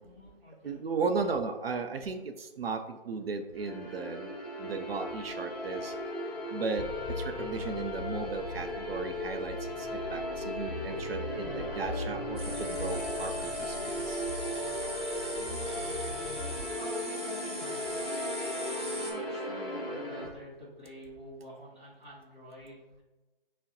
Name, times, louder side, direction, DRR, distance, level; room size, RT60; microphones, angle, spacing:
voice 1, 0.0-0.8 15.3-23.0, left 1 dB, 10° right, -11 dB, 0.9 m, -48 dB
voice 2, 0.6-4.3 4.6-5.9 6.5-6.9 7.2-14.2, right 4 dB, 85° right, 7 dB, 0.5 m, -35 dB
sound 1, 3.5-20.3, equal, 25° left, 0.6 m, -37 dB
sound 2, 6.8-16.6, left 4 dB, 85° left, 0.4 m, -42 dB
sound 3, 12.4-19.1, right 1 dB, 30° right, 0.5 m, -41 dB
5.7 x 2.1 x 2.8 m, 1.1 s
hypercardioid pair, 160°, 29 cm